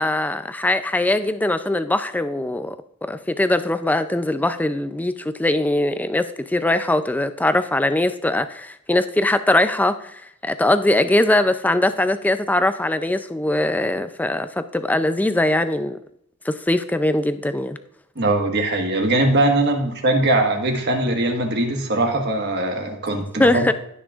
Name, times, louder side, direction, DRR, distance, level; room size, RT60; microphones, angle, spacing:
voice 1, 0.0-2.8 3.0-16.0 16.5-17.8 23.4-23.7, left 1 dB, 5° left, 11 dB, 0.3 m, -21 dB
voice 2, 18.2-23.7, right 2 dB, 50° right, 3 dB, 1.4 m, -21 dB
17.0 x 6.3 x 2.4 m, 0.75 s
head